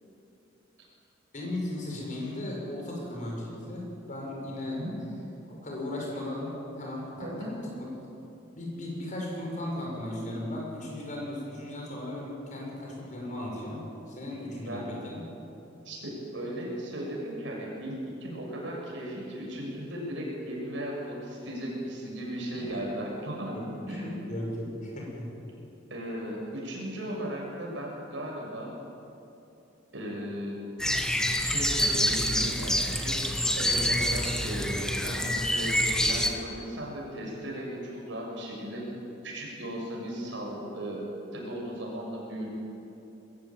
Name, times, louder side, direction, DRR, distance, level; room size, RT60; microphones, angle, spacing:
voice 1, 1.3-4.8 5.5-7.3 7.8-7.9 8.5-13.8 14.1-15.2 22.7-22.8 23.5-23.6 23.9-25.3, left 1 dB, 40° left, -2 dB, 6.5 m, -36 dB
voice 2, 7.2-7.6 14.6-14.9 15.8-23.6 23.9-24.1 25.9-28.7 29.9-30.6 31.5-38.9 39.2-41.0 41.3-42.5, right 1 dB, 75° right, -2 dB, 6.8 m, -36 dB
sound 1, 30.8-36.3, equal, 5° left, 1.4 m, -27 dB
22.0 x 15.0 x 9.0 m, 2.8 s
head